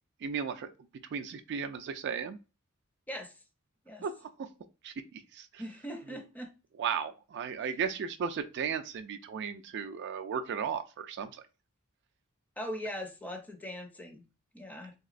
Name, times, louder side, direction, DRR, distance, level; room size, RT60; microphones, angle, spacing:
voice 1, 0.2-0.7 1.1-2.4 4.0-4.5 4.8-5.7 6.0-6.2 6.7-11.4, right 6 dB, 50° right, 0.3 m, -35 dB
voice 2, 3.1-3.4 3.9-4.0 5.6-6.5 12.6-14.2 14.5-14.9, equal, 5° left, 0.5 m, -40 dB
3.4 x 2.9 x 2.4 m
head